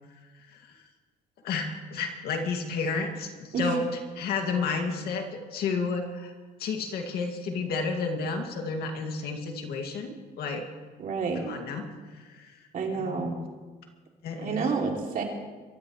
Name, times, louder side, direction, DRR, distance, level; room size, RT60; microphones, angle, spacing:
voice 1, 1.4-6.3 6.6-10.7 11.4-12.6 12.9-13.3 14.2-14.7, left 4 dB, 70° left, 3 dB, 2.2 m, -31 dB
voice 2, 11.0-11.4 12.7-13.4 14.4-15.2, right 5 dB, 55° right, 1 dB, 2.8 m, -29 dB
24.0 x 13.5 x 3.2 m, 1.3 s
cardioid pair, 110°, 17 cm